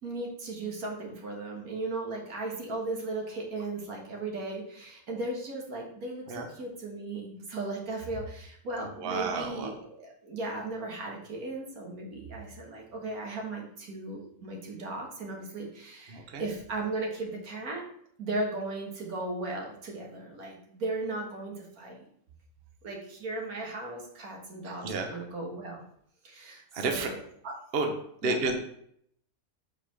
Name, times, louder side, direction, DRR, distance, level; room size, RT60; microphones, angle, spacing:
voice 1, 0.0-17.8 18.2-22.0 22.8-25.8 26.2-27.1 27.4-27.5 28.2-28.4, right 2 dB, 85° right, 0 dB, 1.9 m, -36 dB
voice 2, 9.0-9.7 16.1-16.4 24.6-25.1 26.7-27.1 27.7-27.9 28.2-28.6, right 3 dB, 50° right, 4 dB, 1.0 m, -31 dB
5.1 x 4.3 x 5.8 m, 0.68 s
omnidirectional pair, 1.5 m